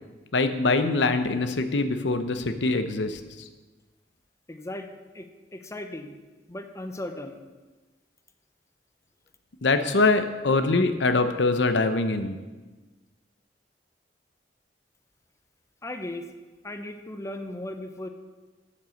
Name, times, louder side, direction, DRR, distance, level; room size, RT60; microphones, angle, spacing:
voice 1, 0.3-3.2 9.6-12.4, left 3 dB, 80° left, 9 dB, 0.8 m, -23 dB
voice 2, 4.5-4.9 5.1-6.2 6.5-7.4 15.8-16.2 16.6-18.1, left 1 dB, 15° left, 7 dB, 0.8 m, -37 dB
9.1 x 8.7 x 6.4 m, 1.2 s
head